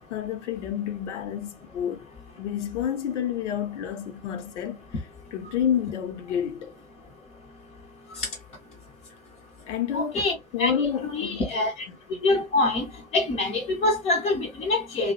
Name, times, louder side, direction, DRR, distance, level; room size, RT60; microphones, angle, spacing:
voice 1, 0.1-2.1 2.4-5.0 5.3-6.8 9.7-11.5 11.9-12.2, left 9 dB, 60° left, 0.6 m, -29 dB
voice 2, 9.9-11.7 12.2-12.9 13.1-15.1, left 2 dB, 15° left, 0.4 m, -25 dB
2.5 x 2.0 x 2.6 m
figure-of-eight pair, 100°, 41 cm